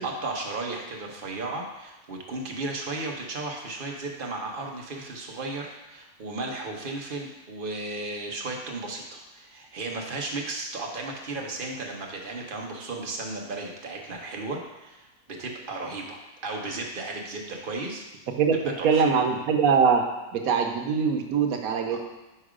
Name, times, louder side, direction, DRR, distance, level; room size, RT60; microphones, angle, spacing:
voice 1, 0.0-18.0 18.8-19.0 21.9-22.0, right 2 dB, 40° right, 0 dB, 1.0 m, -35 dB
voice 2, 18.8-20.0 20.3-22.0, right 6 dB, 80° right, 4 dB, 1.2 m, -22 dB
5.6 x 4.8 x 4.9 m, 1.0 s
omnidirectional pair, 1.5 m